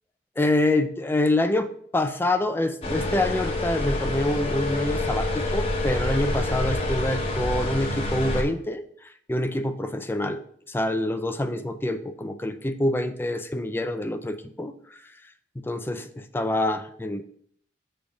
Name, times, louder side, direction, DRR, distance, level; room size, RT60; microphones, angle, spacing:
voice 1, 0.4-8.8 9.3-14.7 15.6-17.2, left 1 dB, 10° left, 9 dB, 0.4 m, -26 dB
sound 1, 2.8-8.4, left 1 dB, 30° left, 1.0 m, -27 dB
7.0 x 3.4 x 5.1 m, 0.64 s
head